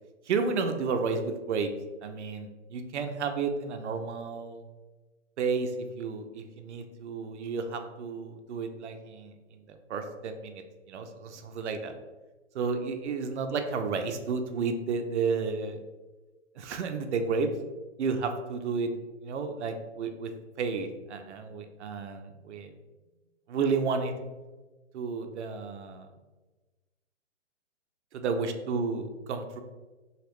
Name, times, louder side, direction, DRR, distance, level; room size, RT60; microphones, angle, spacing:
voice 1, 0.3-1.7 2.0-4.6 5.4-11.9 12.5-15.8 16.6-17.5 18.0-18.9 19.2-20.3 20.6-22.7 23.5-24.1 24.9-26.1 28.1-29.6, right 5 dB, 70° right, 6 dB, 0.6 m, -32 dB
3.0 x 2.9 x 3.0 m, 1.2 s
hypercardioid pair, 145°, 37 cm